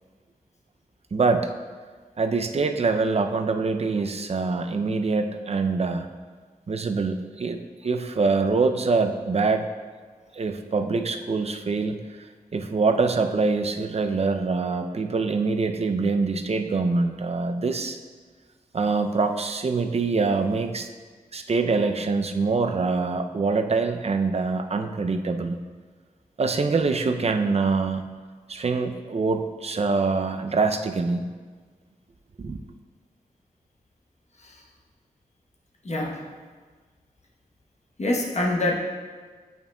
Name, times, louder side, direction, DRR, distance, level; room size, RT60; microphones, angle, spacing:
voice 1, 1.1-1.5 2.2-6.1 6.7-9.7 10.3-12.0 12.5-18.0 18.7-20.9 21.3-25.6 26.4-28.1 28.5-31.3 32.4-32.6, right 4 dB, 45° right, 6 dB, 0.5 m, -24 dB
voice 2, 35.8-36.2 38.0-38.8, left 1 dB, 50° left, -1 dB, 1.1 m, -25 dB
8.5 x 5.3 x 2.3 m, 1.5 s
cardioid pair, 50°, 15 cm